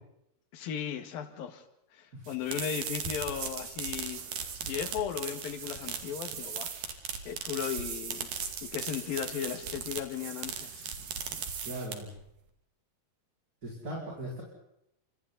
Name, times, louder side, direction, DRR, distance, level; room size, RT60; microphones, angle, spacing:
voice 1, 0.5-1.6 1.9-4.2 4.6-6.7 7.3-8.3 8.6-10.9, left 8 dB, 80° left, 8 dB, 3.6 m, -36 dB
sound 1, 2.2-12.2, right 7 dB, 70° right, 3.9 m, -38 dB
voice 2, 11.6-12.1 13.6-14.4, right 1 dB, 25° right, -4 dB, 5.7 m, -39 dB
30.0 x 27.0 x 4.1 m, 0.81 s
omnidirectional pair, 4.1 m